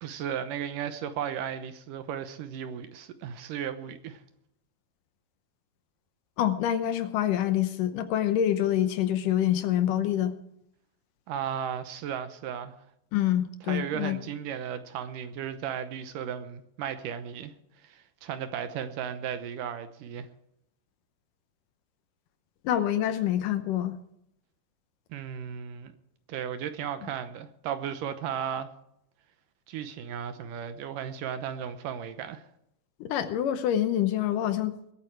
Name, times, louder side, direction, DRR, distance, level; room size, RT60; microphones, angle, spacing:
voice 1, 0.0-4.2 11.3-12.7 13.7-17.5 17.8-20.3 25.1-25.9 26.3-28.7 29.7-32.4, right 8 dB, 75° right, 2.4 m, -35 dB
voice 2, 6.4-10.3 13.1-14.2 22.6-24.0 27.0-27.1 33.0-34.7, left 11 dB, 70° left, 2.3 m, -26 dB
21.5 x 9.0 x 4.7 m
omnidirectional pair, 4.2 m